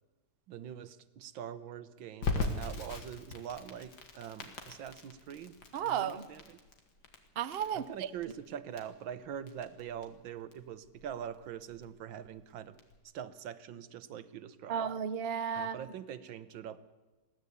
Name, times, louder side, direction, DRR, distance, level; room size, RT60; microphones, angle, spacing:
voice 1, 0.5-5.6 5.8-6.6 7.8-12.8 13.1-14.9 15.6-16.8, right 9 dB, 80° right, 14 dB, 1.7 m, -43 dB
Crackle, 2.2-13.0, left 3 dB, 80° left, 2.8 m, -41 dB
voice 2, 5.7-6.3 7.4-8.1 14.7-15.8, right 8 dB, 60° right, 12 dB, 0.6 m, -33 dB
21.0 x 16.0 x 8.3 m, 1.2 s
omnidirectional pair, 2.1 m